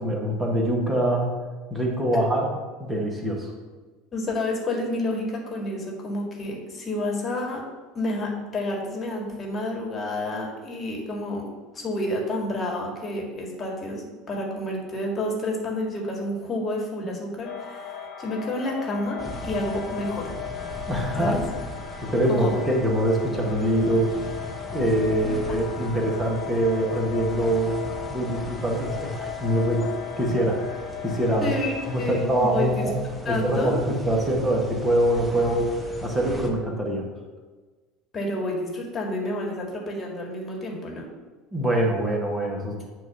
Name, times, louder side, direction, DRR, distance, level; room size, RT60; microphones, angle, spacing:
voice 1, 0.0-1.4 1.7-2.5 2.8-3.5 20.9-21.3 22.1-24.1 24.7-27.8 28.1-30.6 31.0-31.5 31.9-32.9 33.3-37.0 41.5-42.8, right 1 dB, 15° right, -1 dB, 1.8 m, -24 dB
voice 2, 4.1-7.6 7.9-11.5 11.7-20.3 21.2-21.4 22.3-22.6 25.2-25.3 31.4-32.9 33.3-33.8 38.1-41.1, left 1 dB, 30° left, -1 dB, 2.0 m, -29 dB
sound 1, 17.4-32.1, left 9 dB, 50° left, 1.0 m, -37 dB
sound 2, 19.2-36.5, equal, 5° left, 1.2 m, -39 dB
9.0 x 3.1 x 5.8 m, 1.3 s
figure-of-eight pair, 70°, 0 cm